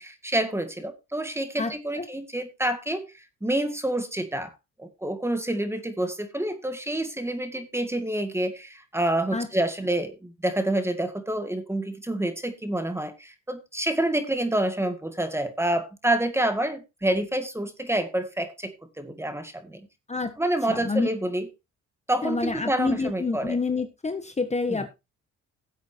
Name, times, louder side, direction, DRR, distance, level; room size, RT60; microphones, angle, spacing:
voice 1, 0.0-3.1 3.4-4.5 4.8-19.8 20.4-21.5 22.1-23.6 24.7-24.8, right 1 dB, 10° right, 2.0 m, -28 dB
voice 2, 1.6-2.0 9.3-9.5 20.1-20.4 20.7-21.1 22.2-24.9, left 4 dB, 20° left, 1.4 m, -28 dB
16.5 x 8.1 x 2.8 m
cardioid pair, 90°, 30 cm